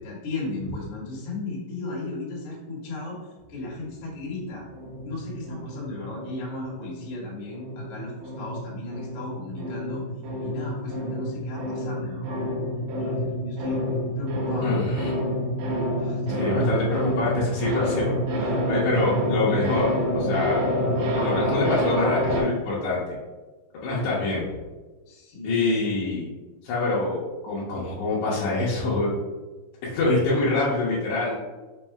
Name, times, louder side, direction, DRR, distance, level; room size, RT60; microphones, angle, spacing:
voice 1, 0.0-3.2 3.5-4.6 5.0-10.0 10.4-12.4 13.0-13.8 14.2-14.8 16.0-16.7 23.9-24.4 25.1-25.8, left 2 dB, 55° left, -5 dB, 1.7 m, -35 dB
sound 1, 4.7-7.3 7.5-22.4, equal, 75° right, 2.2 m, -28 dB
voice 2, 14.6-15.1 16.4-18.2 18.4-20.7 21.1-23.0 23.8-24.4 25.4-26.3 26.6-27.2 27.4-29.2 29.8-31.3, left 3 dB, 70° left, -6 dB, 1.9 m, -25 dB
5.4 x 2.0 x 4.5 m, 1.2 s
omnidirectional pair, 3.8 m